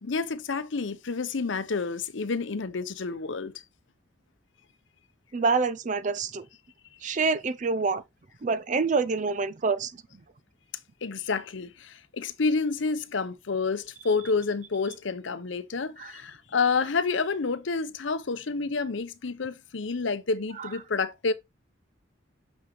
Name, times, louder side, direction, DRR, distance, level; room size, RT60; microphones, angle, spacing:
voice 1, 0.0-3.5 11.0-21.3, left 4 dB, 75° left, 0.7 m, -29 dB
voice 2, 5.3-6.4 7.0-8.0 8.4-9.9 16.0-16.1 20.6-20.7, right 4 dB, 40° right, 0.5 m, -26 dB
6.3 x 5.9 x 3.1 m
head